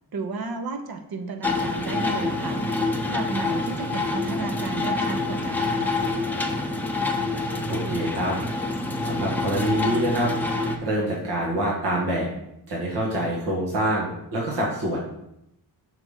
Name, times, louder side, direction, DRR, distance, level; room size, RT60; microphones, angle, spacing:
voice 1, 0.1-2.6 3.1-6.0, right 4 dB, 60° right, 6 dB, 0.9 m, -33 dB
sound 1, 1.4-10.8, left 3 dB, 5° left, 0.7 m, -27 dB
voice 2, 7.7-8.3 9.0-10.3 10.8-12.3 12.7-15.0, right 1 dB, 85° right, -4 dB, 1.6 m, -26 dB
5.7 x 3.5 x 5.5 m, 0.80 s
cardioid pair, 100°, 41 cm